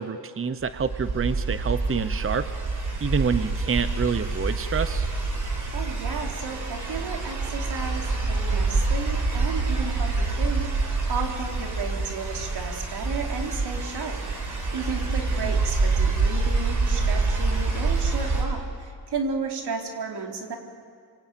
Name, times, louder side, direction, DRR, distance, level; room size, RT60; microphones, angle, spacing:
voice 1, 0.0-2.5 3.0-5.1 15.4-15.5, right 6 dB, 35° right, 11 dB, 0.9 m, -27 dB
sound 1, 0.6-18.4, right 3 dB, 50° right, 6.3 m, -26 dB
voice 2, 5.7-14.2 14.7-20.6, right 5 dB, 80° right, 1 dB, 3.7 m, -33 dB
27.5 x 23.5 x 9.1 m, 2.1 s
wide cardioid pair, 110°, 39 cm